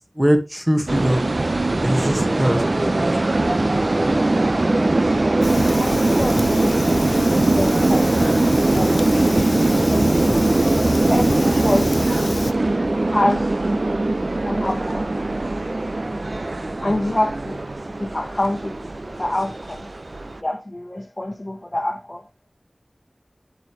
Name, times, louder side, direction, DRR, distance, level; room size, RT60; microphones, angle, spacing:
voice 1, 0.2-1.2 1.8-3.1 16.9-17.0, equal, 15° right, 1.9 m, -21 dB
sound 1, 0.9-20.4, right 2 dB, 60° right, 0.7 m, -20 dB
Fire, 5.4-12.5, left 2 dB, 90° left, 0.7 m, -30 dB
voice 2, 5.8-6.8 7.0-9.5 9.9-10.1 11.1-12.4 13.1-13.5 14.4-15.1 16.8-19.9 20.4-22.3, left 1 dB, 35° left, 1.2 m, -27 dB
9.0 x 7.8 x 3.2 m
wide cardioid pair, 50°, 0 cm